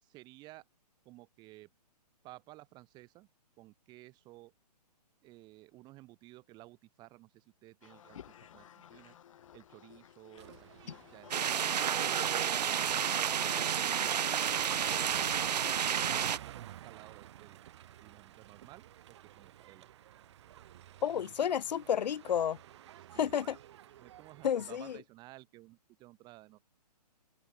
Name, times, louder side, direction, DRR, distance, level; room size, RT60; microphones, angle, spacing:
voice 1, 0.0-0.6 1.0-1.7 2.2-3.3 3.6-4.5 5.2-8.2 8.5-9.2 9.5-13.1 13.7-14.0 14.6-17.6 18.0-19.9 23.0-23.5 24.0-26.7, right 19 dB, 20° right, 4.8 m, -55 dB
sound 1, 7.8-15.7, left 10 dB, 50° left, 2.0 m, -56 dB
sound 2, 10.4-25.0, right 12 dB, 45° right, 7.6 m, -53 dB
sound 3, 11.3-16.4, right 8 dB, 80° right, 0.6 m, -30 dB
voice 2, 21.0-22.6 23.2-23.6 24.4-25.0, left 9 dB, 90° left, 0.5 m, -31 dB
open air
hypercardioid pair, 160°, 21 cm